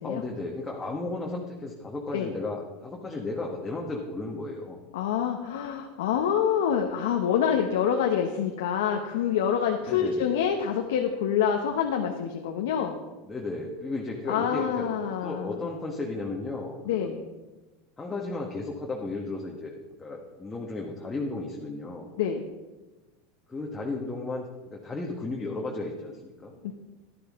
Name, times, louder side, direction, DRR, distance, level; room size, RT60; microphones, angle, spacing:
voice 1, 0.0-4.8 9.8-10.4 13.3-17.1 18.0-22.1 23.5-26.5, left 2 dB, 15° left, -2 dB, 1.4 m, -34 dB
voice 2, 4.9-13.0 14.3-15.6 16.8-17.2 22.2-22.5 26.6-26.7, left 8 dB, 85° left, 3 dB, 1.0 m, -26 dB
12.0 x 11.5 x 3.7 m, 1.2 s
supercardioid pair, 125°, 0 cm